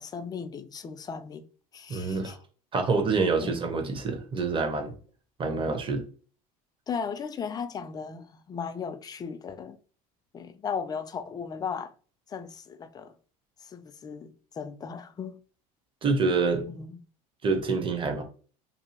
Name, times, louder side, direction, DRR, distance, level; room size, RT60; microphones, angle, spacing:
voice 1, 0.0-1.5 1.7-2.4 3.4-3.6 6.9-9.8 10.3-11.9 12.3-13.1 13.6-15.4 16.7-17.0, left 6 dB, 20° left, 0.3 m, -36 dB
voice 2, 1.9-2.4 2.7-4.9 5.4-6.0 16.0-16.7 17.4-18.2, right 4 dB, 25° right, 0.8 m, -26 dB
2.6 x 2.4 x 2.8 m
hypercardioid pair, 90°, 19 cm